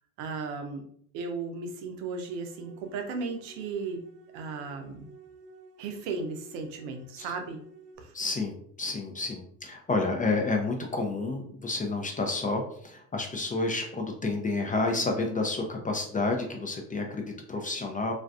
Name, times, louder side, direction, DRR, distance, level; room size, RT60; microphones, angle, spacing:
voice 1, 0.2-0.8 1.1-4.0 4.3-5.1 5.8-7.6 8.0-8.1, right 4 dB, 80° right, 5 dB, 0.6 m, -35 dB
sound 1, 2.2-8.0, right 2 dB, 35° right, 0.7 m, -53 dB
voice 2, 8.1-18.1, left 3 dB, 20° left, 3 dB, 0.4 m, -30 dB
2.4 x 2.2 x 2.3 m, 0.62 s
hypercardioid pair, 65°, 43 cm